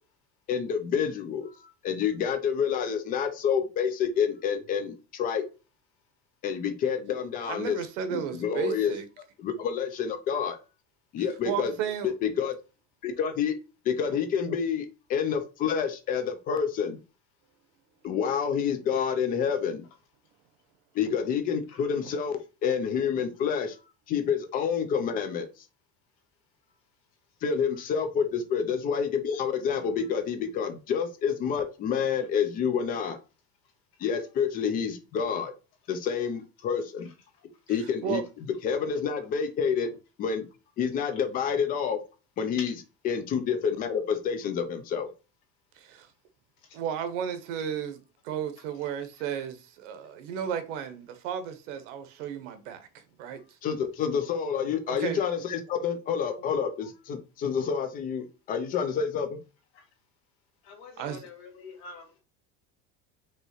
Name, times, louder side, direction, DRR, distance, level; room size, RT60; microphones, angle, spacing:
voice 1, 0.5-1.5 1.8-5.4 6.4-7.8 8.1-8.9 9.4-10.6 11.1-11.7 12.0-12.6 13.0-13.5 13.9-17.0 18.0-19.8 20.9-22.3 22.6-23.8 24.1-25.5 27.4-33.2 34.0-35.5 35.9-37.1 37.7-38.2 38.6-39.9 40.2-40.4 40.8-42.0 42.4-42.7 43.0-45.1 53.6-59.4, left 7 dB, 25° left, 0.4 m, -28 dB
voice 2, 7.4-9.0 11.4-12.1 14.1-14.2 22.0-22.1 38.0-38.2 45.8-46.1 46.7-52.9 53.2-53.4 54.9-55.2 61.0-61.2, right 8 dB, 85° right, 1.0 m, -33 dB
voice 3, 60.6-62.2, left 4 dB, 65° left, 2.3 m, -48 dB
5.4 x 2.9 x 3.0 m
cardioid pair, 175°, 35 cm